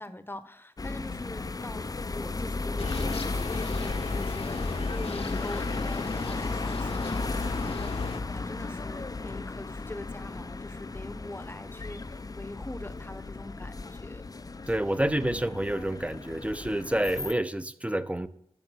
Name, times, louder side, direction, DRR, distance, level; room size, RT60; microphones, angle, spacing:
voice 1, 0.0-14.2, left 1 dB, 20° left, 12 dB, 0.9 m, -43 dB
sound 1, 0.8-17.3, left 3 dB, 35° left, 0.5 m, -34 dB
sound 2, 2.8-8.2, left 4 dB, 75° left, 1.0 m, -37 dB
voice 2, 14.7-18.3, right 1 dB, 10° right, 12 dB, 0.7 m, -28 dB
11.0 x 6.8 x 6.3 m, 0.75 s
wide cardioid pair, 60°, 10 cm